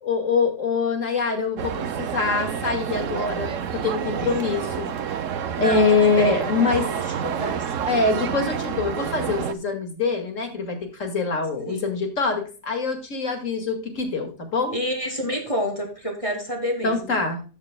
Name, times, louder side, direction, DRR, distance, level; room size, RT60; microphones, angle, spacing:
voice 1, 0.0-4.9 5.6-6.9 7.9-14.8 16.8-17.4, left 4 dB, 55° left, 5 dB, 2.4 m, -24 dB
sound 1, 1.6-9.5, right 8 dB, 60° right, 1.1 m, -28 dB
voice 2, 5.6-6.3 6.6-7.6 11.7-11.8 14.7-17.1, equal, 20° left, 1 dB, 2.6 m, -29 dB
13.5 x 7.4 x 2.2 m, 0.35 s
omnidirectional pair, 1.6 m